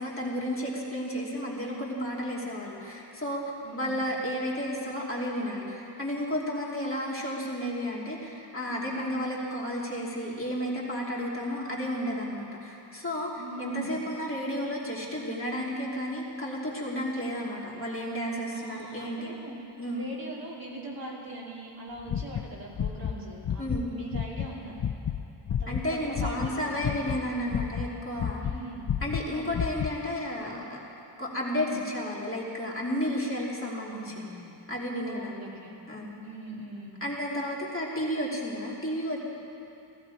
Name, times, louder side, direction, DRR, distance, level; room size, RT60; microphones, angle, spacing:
voice 1, 0.0-3.4 3.7-13.3 13.6-19.3 19.8-20.1 23.6-24.0 25.7-28.4 29.0-30.8 31.2-34.2 34.7-35.5 35.9-36.2 37.0-39.2, equal, 30° left, -4 dB, 2.7 m, -32 dB
voice 2, 13.4-14.0 18.5-19.6 19.9-24.8 25.6-26.9 28.4-28.9 29.3-29.5 31.5-31.8 33.8-34.5 35.1-35.8 36.2-37.0, right 2 dB, 50° right, -4 dB, 2.9 m, -41 dB
sound 1, 22.0-23.2 23.4-23.8 24.1-26.5 26.8-28.6 28.9-29.9, left 8 dB, 55° left, 0.6 m, -30 dB
16.5 x 14.5 x 4.8 m, 2.7 s
wide cardioid pair, 80°, 44 cm